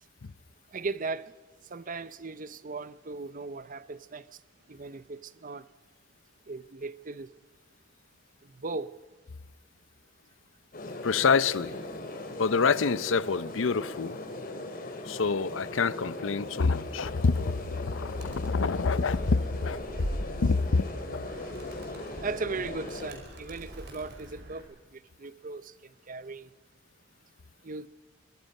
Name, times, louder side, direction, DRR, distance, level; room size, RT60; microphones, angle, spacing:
voice 1, 0.7-1.3 1.7-4.2 4.7-5.6 6.5-7.3 8.6-8.9 22.2-24.6 25.2-25.6 26.1-26.5 27.6-27.9, right 3 dB, 45° right, 0.7 m, -37 dB
sound 1, 10.7-23.1, left 2 dB, 50° left, 3.0 m, -39 dB
voice 2, 11.0-11.8 12.4-14.2 15.0-19.8 20.4-20.8, left 4 dB, 80° left, 0.6 m, -26 dB
Animal, 18.1-24.6, equal, 60° right, 4.8 m, -41 dB
24.5 x 22.0 x 5.5 m
head